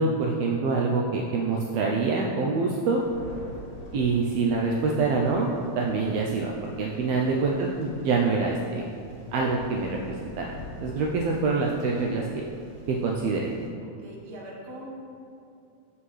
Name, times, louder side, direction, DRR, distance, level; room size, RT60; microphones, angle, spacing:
voice 1, 0.0-3.0 3.9-8.9 9.3-10.5 10.8-12.4 12.9-13.5, right 4 dB, 85° right, -1 dB, 1.4 m, -26 dB
Thunder, 2.9-13.7, left 2 dB, 55° left, 1.9 m, -45 dB
voice 2, 7.0-7.4 14.0-14.9, right 1 dB, 50° right, -4 dB, 1.2 m, -43 dB
8.2 x 5.6 x 3.2 m, 2.6 s
omnidirectional pair, 3.4 m